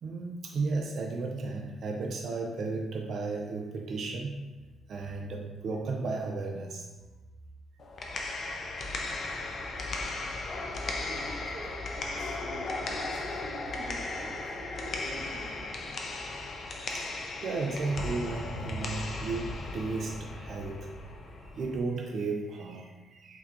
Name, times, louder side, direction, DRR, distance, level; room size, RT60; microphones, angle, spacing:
voice 1, 0.0-4.4 4.9-6.9 16.9-17.1 17.4-20.9 21.4-23.4, right 3 dB, 60° right, 1 dB, 0.5 m, -34 dB
sound 1, 7.8-21.8, left 2 dB, 55° left, 0.5 m, -36 dB
voice 2, 11.0-15.7, right 1 dB, 85° right, -3 dB, 1.0 m, -46 dB
5.7 x 2.8 x 2.4 m, 1.2 s
cardioid pair, 90°, 0 cm